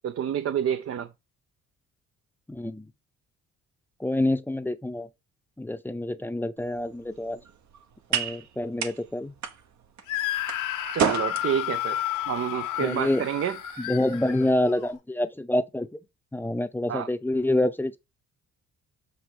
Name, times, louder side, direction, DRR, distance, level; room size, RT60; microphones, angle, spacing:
voice 1, 0.0-1.1 10.9-12.0 12.3-13.6 16.9-17.1, right 9 dB, 50° right, 0.6 m, -28 dB
voice 2, 2.5-2.9 4.0-5.1 5.6-7.4 8.1-9.3 12.8-13.3 13.8-15.9 16.3-18.0, left 1 dB, 5° left, 0.7 m, -27 dB
sound 1, 6.6-15.0, right 7 dB, 65° right, 1.2 m, -35 dB
Screaming, 10.1-14.9, left 12 dB, 85° left, 1.3 m, -32 dB
7.9 x 3.3 x 4.8 m
cardioid pair, 90°, 30 cm